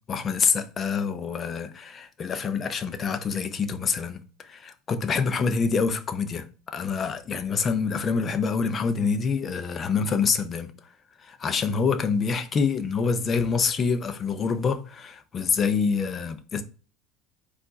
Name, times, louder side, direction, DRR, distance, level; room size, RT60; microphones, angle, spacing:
voice 1, 0.1-4.2 4.5-6.5 6.7-10.7 11.3-16.6, left 5 dB, 30° left, 0.5 m, -26 dB
4.5 x 2.4 x 4.0 m
supercardioid pair, 125°, 0 cm